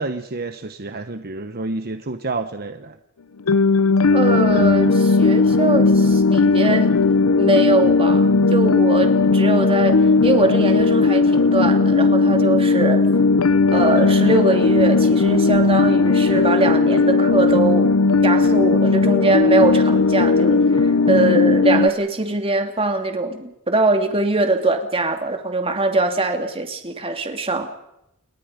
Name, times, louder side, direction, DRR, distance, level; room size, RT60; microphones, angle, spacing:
voice 1, 0.0-3.0, right 3 dB, 45° right, 8 dB, 1.1 m, -29 dB
sound 1, 3.5-21.9, left 3 dB, 85° left, 0.8 m, -16 dB
voice 2, 4.1-7.0 7.4-10.0 10.2-13.1 13.7-17.9 18.2-27.7, right 2 dB, 25° right, 5 dB, 2.6 m, -22 dB
29.0 x 22.5 x 5.2 m, 0.85 s
head